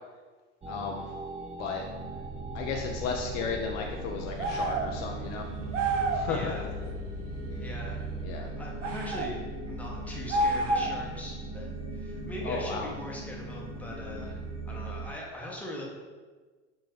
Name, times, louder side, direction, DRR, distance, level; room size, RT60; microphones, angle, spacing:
sound 1, 0.6-15.1, right 2 dB, 15° right, 0.6 m, -38 dB
voice 1, 0.7-1.0 1.6-1.9 2.5-5.5 6.1-6.7 8.2-8.5 12.4-12.9, left 5 dB, 45° left, 1 dB, 0.5 m, -34 dB
sound 2, 4.4-4.9 5.7-6.3 8.8-9.3 10.3-11.1, right 2 dB, 85° right, 0.5 m, -28 dB
voice 2, 6.3-6.7 7.6-9.4 9.7-15.8, left 1 dB, 5° left, -3 dB, 0.9 m, -41 dB
4.3 x 3.1 x 3.1 m, 1.4 s
figure-of-eight pair, 70°, 36 cm